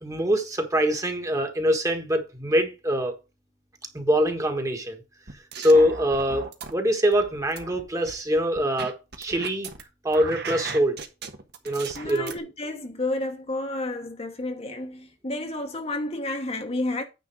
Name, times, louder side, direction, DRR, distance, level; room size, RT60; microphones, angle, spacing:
voice 1, 0.0-3.1 3.9-5.0 5.6-9.7 10.0-11.0 11.6-12.3, equal, 20° right, 1.4 m, -24 dB
sound 1, 5.3-6.7 7.1-9.8 10.1-12.4, right 5 dB, 60° right, 1.4 m, -37 dB
voice 2, 11.9-17.0, left 2 dB, 35° left, 1.1 m, -31 dB
9.4 x 4.0 x 6.1 m
head